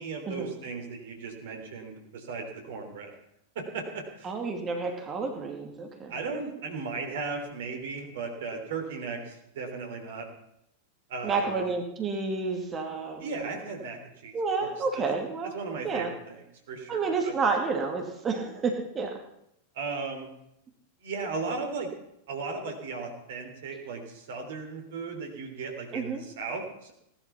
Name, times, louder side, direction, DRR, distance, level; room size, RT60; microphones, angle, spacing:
voice 1, 0.0-3.1 3.5-4.3 6.1-10.3 11.1-11.6 13.2-14.3 14.6-15.0 15.5-17.3 19.7-20.3 21.0-21.9 22.3-26.9, right 4 dB, 55° right, 4 dB, 3.4 m, -36 dB
voice 2, 4.2-6.1 11.2-13.3 14.3-15.5 15.8-16.1 16.9-19.1 25.9-26.2, right 4 dB, 25° right, 2 dB, 2.5 m, -30 dB
18.0 x 12.0 x 5.8 m, 0.78 s
figure-of-eight pair, 90°, 0 cm